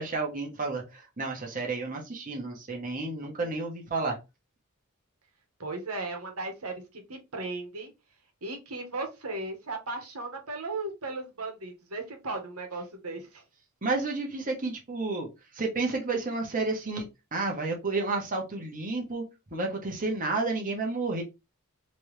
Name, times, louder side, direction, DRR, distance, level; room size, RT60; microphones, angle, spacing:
voice 1, 0.0-4.1 13.8-15.3 15.5-19.2 19.5-21.2, right 3 dB, 40° right, 0 dB, 1.2 m, -31 dB
voice 2, 5.6-7.9 8.4-13.4, right 2 dB, 80° right, 3 dB, 1.3 m, -36 dB
3.4 x 3.2 x 3.3 m, 0.24 s
head